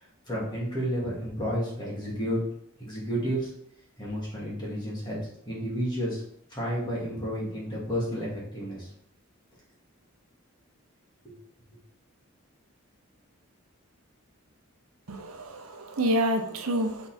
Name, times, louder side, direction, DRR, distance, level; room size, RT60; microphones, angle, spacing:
voice 1, 0.3-2.4 2.8-3.5 4.0-6.2 6.5-8.9 11.2-11.3, equal, 20° left, -6 dB, 2.3 m, -31 dB
voice 2, 15.1-17.1, right 1 dB, 90° right, 4 dB, 0.9 m, -28 dB
5.6 x 4.1 x 4.3 m, 0.69 s
head